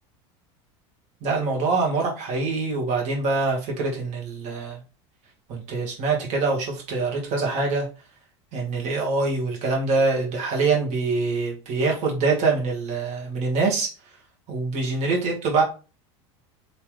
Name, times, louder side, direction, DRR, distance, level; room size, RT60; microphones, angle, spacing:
voice 1, 1.2-4.8 5.5-7.9 8.5-13.9 14.5-15.6, right 3 dB, 50° right, -1 dB, 1.4 m, -24 dB
3.6 x 2.9 x 3.0 m, 0.33 s
supercardioid pair, 125°, 15 cm